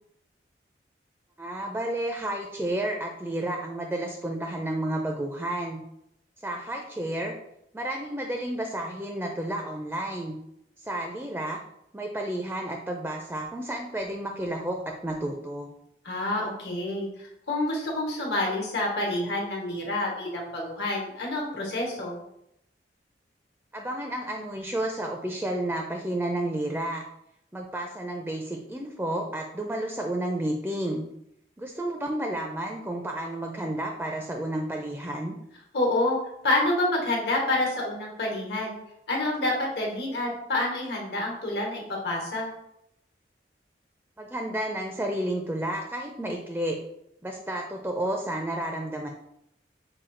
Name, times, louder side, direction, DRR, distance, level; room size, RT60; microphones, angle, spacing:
voice 1, 1.4-5.8 6.4-7.3 7.7-10.4 10.8-11.6 11.9-15.7 23.7-27.0 27.5-31.1 31.6-35.4 44.2-46.8 47.2-49.1, right 1 dB, 10° right, 2 dB, 0.4 m, -31 dB
voice 2, 16.0-17.1 17.5-22.2 35.7-36.2 36.4-38.8 39.1-42.5, left 2 dB, 70° left, -2 dB, 1.2 m, -28 dB
5.7 x 2.3 x 3.7 m, 0.79 s
head